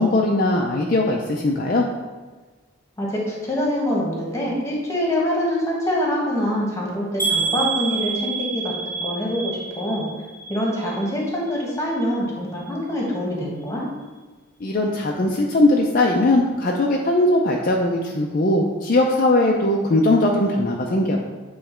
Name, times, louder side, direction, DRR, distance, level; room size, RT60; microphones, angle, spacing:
voice 1, 0.0-1.8 14.6-21.2, left 2 dB, 45° left, -1 dB, 0.5 m, -19 dB
voice 2, 3.0-10.1 10.5-13.8, equal, 15° left, -3 dB, 1.3 m, -25 dB
sound 1, 7.2-11.2 11.5-12.1 12.5-12.7 13.0-13.1, right 5 dB, 20° right, 1.4 m, -28 dB
7.8 x 3.2 x 4.4 m, 1.3 s
head